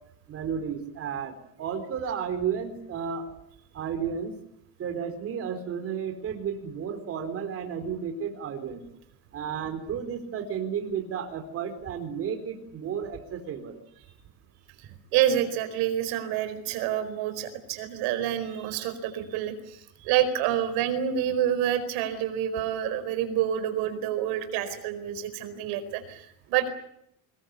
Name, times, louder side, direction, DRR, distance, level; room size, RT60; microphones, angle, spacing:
voice 1, 0.3-3.3 3.7-4.3 4.8-8.8 9.3-13.8, right 7 dB, 40° right, 5 dB, 4.3 m, -32 dB
voice 2, 15.1-26.7, right 10 dB, 80° right, 9 dB, 4.7 m, -28 dB
25.0 x 20.5 x 8.5 m, 0.76 s
cardioid pair, 160°, 37 cm